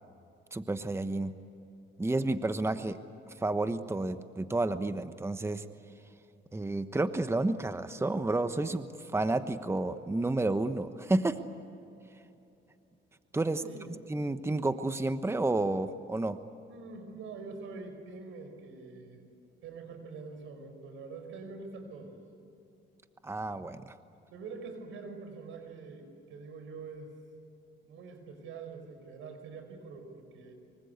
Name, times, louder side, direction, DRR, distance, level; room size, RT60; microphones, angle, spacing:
voice 1, 0.5-1.4 2.0-3.0 3.4-5.6 6.5-11.4 13.3-13.6 14.1-16.4 23.2-23.9, right 2 dB, 15° right, 10 dB, 1.1 m, -30 dB
voice 2, 13.6-14.0 16.7-19.2 19.6-22.2 24.1-27.1 27.8-30.5, right 4 dB, 85° right, 7 dB, 5.2 m, -45 dB
25.0 x 24.5 x 8.3 m, 2.8 s
cardioid pair, 90°, 20 cm